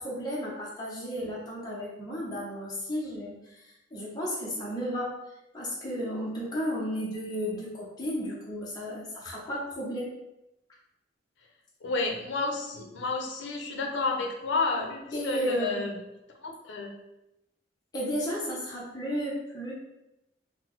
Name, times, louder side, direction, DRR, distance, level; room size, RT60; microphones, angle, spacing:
voice 1, 0.0-10.1 15.1-15.9 17.9-19.7, equal, 20° left, -6 dB, 0.6 m, -33 dB
voice 2, 11.8-15.9 16.4-16.9, left 3 dB, 70° left, 2 dB, 0.5 m, -31 dB
3.8 x 2.0 x 2.9 m, 0.90 s
head